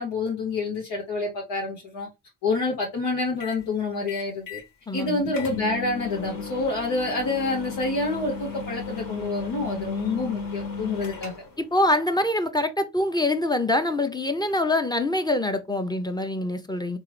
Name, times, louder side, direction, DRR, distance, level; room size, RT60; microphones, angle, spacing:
voice 1, 0.0-2.1 2.4-4.6 4.9-11.3, left 3 dB, 85° left, 1.0 m, -27 dB
sound 1, 3.4-3.6 4.1-4.7 5.0-5.1 5.3-11.6, left 4 dB, 55° left, 1.3 m, -35 dB
voice 2, 4.9-5.3 11.6-17.0, left 1 dB, 10° left, 0.7 m, -25 dB
3.7 x 2.6 x 3.2 m
supercardioid pair, 50°, 41 cm